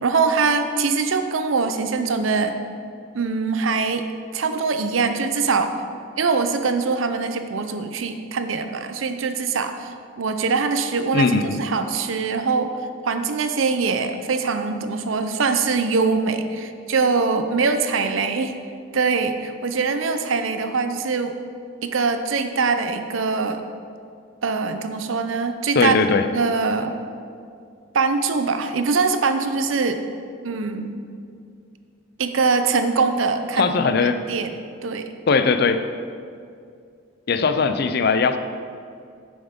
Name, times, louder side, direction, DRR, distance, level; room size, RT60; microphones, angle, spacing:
voice 1, 0.0-2.6 3.1-4.1 4.3-5.7 6.2-11.3 11.6-12.8 13.0-18.6 18.9-21.4 21.8-23.6 24.4-25.9 26.3-26.9 27.9-30.0 30.4-31.0 32.2-33.8 34.3-34.5 34.8-35.1, right 4 dB, 80° right, 8 dB, 0.6 m, -23 dB
voice 2, 11.1-11.6 25.8-26.2 33.6-34.2 35.3-35.8 37.3-38.4, left 4 dB, 50° left, 10 dB, 0.5 m, -19 dB
9.9 x 7.0 x 3.7 m, 2.3 s
head